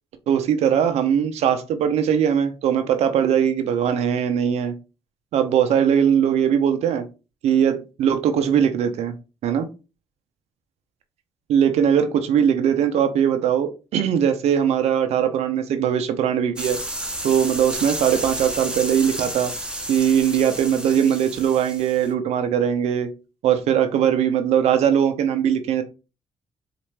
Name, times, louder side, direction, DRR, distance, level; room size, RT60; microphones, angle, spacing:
voice 1, 0.3-4.7 5.3-7.0 7.4-9.1 9.4-9.7 11.5-16.8 17.2-19.5 19.9-23.1 23.4-25.8, right 8 dB, 75° right, 8 dB, 0.5 m, -20 dB
sound 1, 16.6-22.1, right 1 dB, 10° right, 0.9 m, -31 dB
4.2 x 2.5 x 3.2 m, 0.30 s
supercardioid pair, 65°, 11 cm